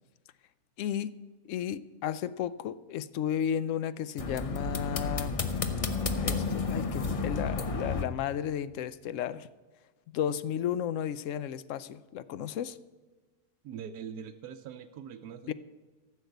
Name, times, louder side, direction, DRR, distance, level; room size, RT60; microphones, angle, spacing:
voice 1, 0.8-1.1 1.5-5.4 6.2-9.5 10.1-12.8 15.5-15.6, left 9 dB, 65° left, 15 dB, 0.8 m, -33 dB
sound 1, 4.2-8.0, left 4 dB, 40° left, 0.5 m, -31 dB
voice 2, 13.6-15.5, right 7 dB, 85° right, 6 dB, 1.2 m, -42 dB
14.5 x 6.6 x 7.9 m, 1.3 s
omnidirectional pair, 1.6 m